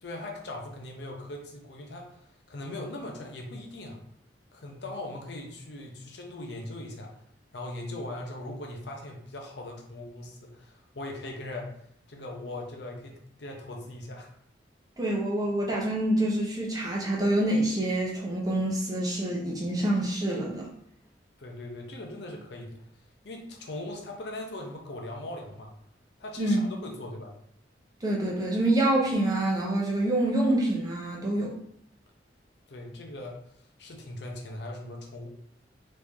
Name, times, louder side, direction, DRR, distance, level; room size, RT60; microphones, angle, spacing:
voice 1, 0.0-2.2 2.5-4.0 4.5-7.2 7.5-11.7 12.1-14.3 21.4-22.8 23.2-25.7 26.2-27.3 32.7-35.3, left 1 dB, 70° left, 1 dB, 0.7 m, -40 dB
voice 2, 15.0-20.7 26.4-26.6 28.0-31.5, right 1 dB, 20° right, -3 dB, 0.7 m, -26 dB
3.2 x 2.7 x 3.5 m, 0.69 s
head